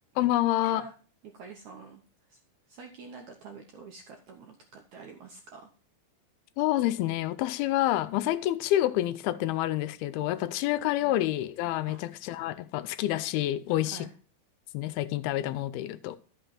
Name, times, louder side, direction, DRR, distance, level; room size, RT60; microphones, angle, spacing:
voice 1, 0.2-0.8 6.6-14.1 14.7-16.2, left 14 dB, 85° left, 2.4 m, -28 dB
voice 2, 1.2-2.4 2.7-5.7 11.0-11.2 11.8-12.0 13.9-14.1, right 5 dB, 75° right, 1.7 m, -47 dB
12.0 x 5.9 x 4.3 m
omnidirectional pair, 4.5 m